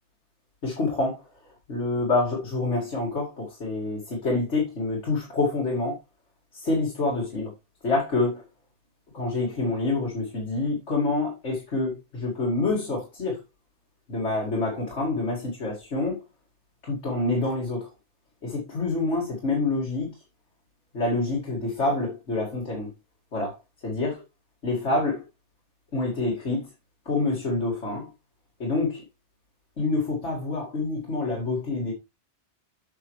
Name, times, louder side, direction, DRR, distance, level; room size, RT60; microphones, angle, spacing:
voice 1, 0.6-6.0 6.5-7.5 7.8-8.4 9.1-13.4 14.1-16.2 16.8-17.9 18.4-20.1 20.9-22.9 23.3-24.2 24.6-25.2 25.9-26.7 27.1-28.1 28.6-29.0 29.8-31.9, left 2 dB, 80° left, 2.5 m, -27 dB
8.6 x 5.8 x 3.1 m
omnidirectional pair, 1.2 m